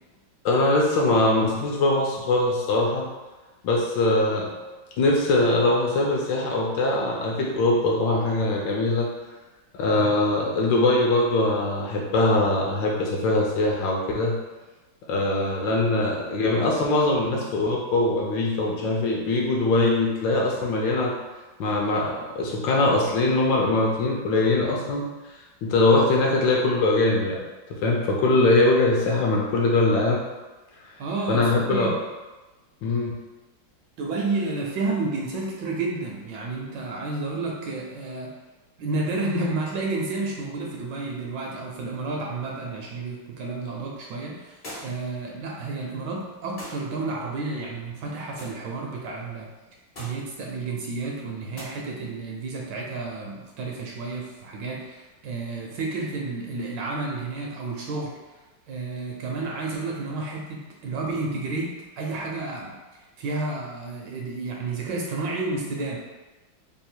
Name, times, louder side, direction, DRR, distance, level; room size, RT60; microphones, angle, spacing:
voice 1, 0.4-3.1 3.6-4.5 5.0-9.1 9.7-14.4 15.1-21.1 21.6-25.1 25.6-27.4 27.7-30.2 31.3-31.9 32.8-33.1, left 2 dB, 75° left, -2 dB, 1.1 m, -22 dB
voice 2, 31.0-32.0 34.0-38.3 38.8-49.5 50.0-58.4 58.7-66.0, right 3 dB, 75° right, -1 dB, 1.1 m, -31 dB
Balloons popping, 44.6-45.1 46.6-46.9 48.4-48.6 49.9-50.3 51.5-51.7, equal, 40° left, 0.7 m, -40 dB
3.4 x 2.3 x 4.3 m, 1.2 s
omnidirectional pair, 2.3 m